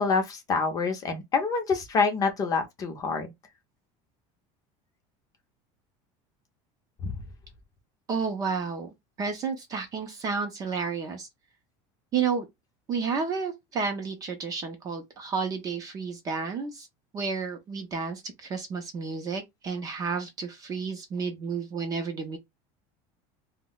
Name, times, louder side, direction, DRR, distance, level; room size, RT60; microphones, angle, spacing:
voice 1, 0.0-3.3 7.0-7.2, left 4 dB, 25° left, 0.6 m, -26 dB
voice 2, 8.1-8.9 9.2-11.3 12.1-12.5 12.9-16.9 17.1-22.4, right 5 dB, 25° right, 0.5 m, -31 dB
2.2 x 2.0 x 3.8 m
cardioid pair, 170°, 15 cm